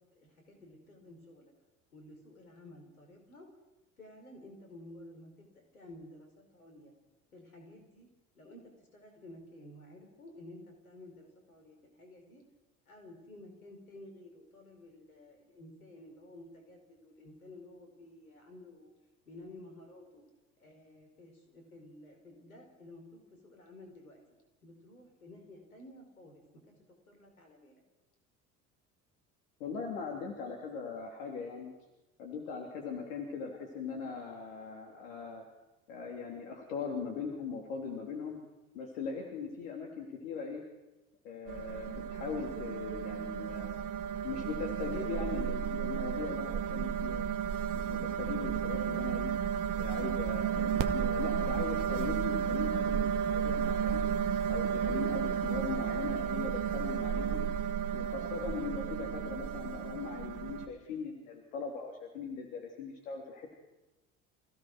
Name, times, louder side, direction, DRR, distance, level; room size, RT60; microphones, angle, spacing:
voice 1, 0.0-1.5 1.9-3.5 4.0-6.9 7.3-8.1 8.3-12.4 12.9-18.9 19.2-20.2 20.6-24.2 24.6-26.4 27.1-27.8, left 1 dB, 85° left, 3 dB, 4.8 m, -53 dB
voice 2, 29.6-31.7 32.2-35.4 35.9-38.4 38.7-40.6 41.2-43.7 44.2-47.3 47.7-49.3 49.7-54.0 54.5-57.5 57.9-63.5, left 5 dB, 70° left, 1 dB, 3.4 m, -40 dB
sound 1, 41.5-60.7, right 8 dB, 50° right, 1.8 m, -33 dB
27.0 x 16.5 x 6.2 m, 1.0 s
figure-of-eight pair, 60°, 42 cm